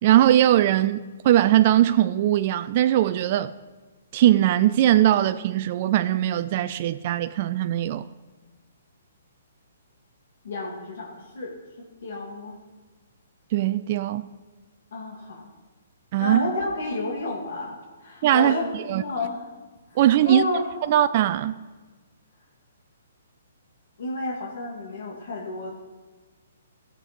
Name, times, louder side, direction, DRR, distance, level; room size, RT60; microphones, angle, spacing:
voice 1, 0.0-3.5 4.1-8.1 13.5-14.3 16.1-16.4 18.2-19.0 20.0-20.4 20.9-21.6, right 12 dB, 40° right, 0.4 m, -20 dB
voice 2, 10.4-11.6 12.0-12.6 14.9-15.5 16.2-19.4 19.9-20.0 20.2-20.7 24.0-25.7, left 2 dB, 70° left, 2.5 m, -30 dB
15.0 x 7.4 x 5.4 m
hypercardioid pair, 155°, 0 cm